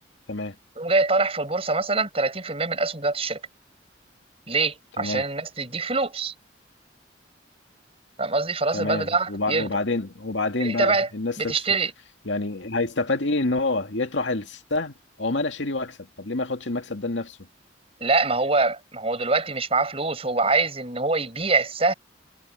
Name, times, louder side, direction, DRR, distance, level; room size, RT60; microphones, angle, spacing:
voice 1, 0.8-3.4 4.5-6.3 8.2-9.7 10.6-11.1 11.4-11.9 18.0-21.9, right 3 dB, 30° right, 5.9 m, -24 dB
voice 2, 8.7-11.5 12.2-17.4, left 2 dB, 80° left, 2.2 m, -27 dB
head